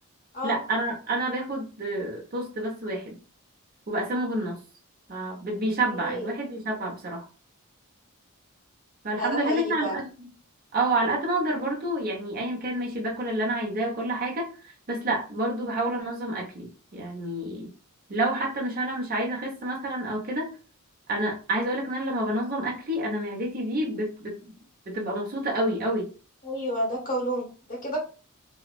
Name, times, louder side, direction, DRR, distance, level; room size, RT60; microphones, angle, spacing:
voice 1, 0.4-3.2 3.9-4.6 5.1-7.2 9.0-10.1 10.7-14.5 14.9-17.7 18.1-20.5 21.1-24.3 24.9-26.1, right 1 dB, 40° right, -2 dB, 0.8 m, -28 dB
voice 2, 5.9-6.3 9.1-10.0 26.4-28.0, right 1 dB, 40° left, 0 dB, 0.9 m, -30 dB
3.0 x 2.0 x 2.4 m, 0.36 s
head